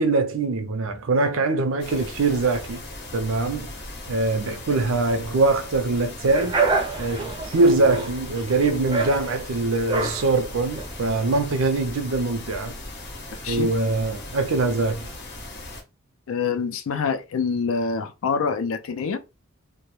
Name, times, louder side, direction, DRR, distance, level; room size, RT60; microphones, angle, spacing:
voice 1, 0.0-2.8 3.1-3.7 4.1-6.6 7.0-12.7 13.5-15.1, right 3 dB, 80° right, 0.5 m, -23 dB
sound 1, 1.8-15.8, left 2 dB, 55° left, 0.7 m, -38 dB
sound 2, 6.3-11.4, right 4 dB, 25° right, 0.4 m, -27 dB
voice 2, 16.3-19.2, left 5 dB, 85° left, 0.4 m, -26 dB
2.2 x 2.1 x 3.0 m
head